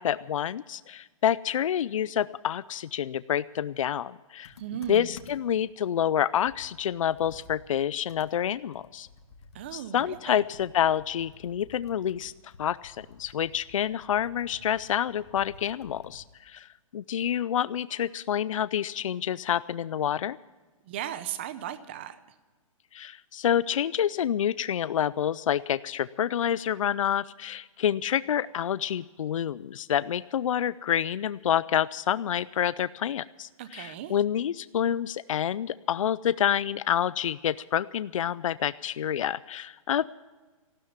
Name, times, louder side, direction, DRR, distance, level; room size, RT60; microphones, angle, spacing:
voice 1, 0.0-4.5 4.9-9.1 9.7-12.3 12.6-16.7 16.9-20.4 22.9-40.1, left 9 dB, 65° left, 17 dB, 0.4 m, -28 dB
Computer keyboard, 4.4-5.6 6.1-6.2 6.5-16.3, left 3 dB, 50° left, 1.8 m, -52 dB
voice 2, 4.6-5.1 9.5-10.4 20.8-22.2 33.6-34.2, right 10 dB, 20° right, 14 dB, 0.6 m, -37 dB
15.0 x 12.5 x 7.2 m, 1.3 s
hypercardioid pair, 175°, 18 cm